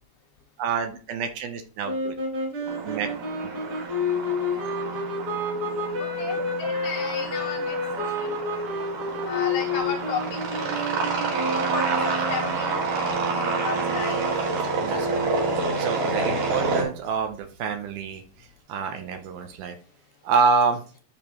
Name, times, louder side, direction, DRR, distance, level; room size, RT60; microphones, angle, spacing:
voice 1, 0.6-2.1 2.8-3.1 3.5-3.7 14.8-15.3 15.8-18.2 18.7-19.8 20.2-20.8, right 5 dB, 75° right, 6 dB, 2.2 m, -27 dB
sound 1, 1.8-12.6, left 3 dB, 35° right, 4.5 m, -29 dB
sound 2, 2.7-16.8, right 4 dB, 55° right, 2.9 m, -28 dB
voice 2, 6.0-8.4 9.2-10.7 11.5-12.8 13.2-14.2 16.0-16.1, left 5 dB, 80° left, 1 dB, 2.6 m, -34 dB
12.5 x 5.2 x 3.0 m, 0.40 s
omnidirectional pair, 5.2 m